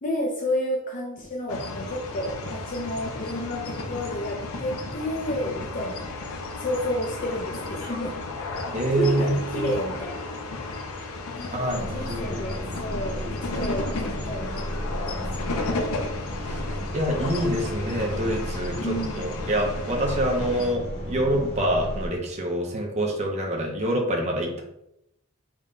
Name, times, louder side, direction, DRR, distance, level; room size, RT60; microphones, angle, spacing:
voice 1, 0.0-6.1 6.6-8.2 8.9-10.3 11.4-15.8 18.8-19.3, left 1 dB, 40° left, -1 dB, 0.4 m, -31 dB
sound 1, 1.5-20.7, left 3 dB, 90° left, 0.5 m, -34 dB
voice 2, 8.7-9.8 11.5-12.4 16.5-16.6 16.9-18.8 19.2-24.6, right 1 dB, 30° right, 0 dB, 0.5 m, -26 dB
sound 2, 11.7-22.1, equal, 55° left, 1.0 m, -34 dB
3.5 x 2.1 x 3.7 m, 0.82 s
head